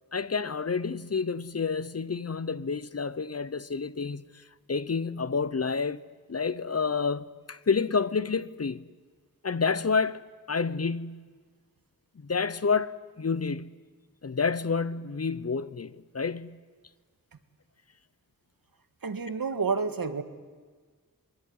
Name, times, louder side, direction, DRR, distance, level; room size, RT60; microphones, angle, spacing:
voice 1, 0.1-4.2 4.7-6.0 6.3-8.8 9.4-10.2 10.5-11.3 12.2-13.7 14.2-16.6, left 5 dB, 45° left, 0.8 m, -29 dB
voice 2, 19.0-20.2, right 4 dB, 75° right, 1.8 m, -29 dB
24.0 x 22.0 x 9.6 m
wide cardioid pair, 80°, 35 cm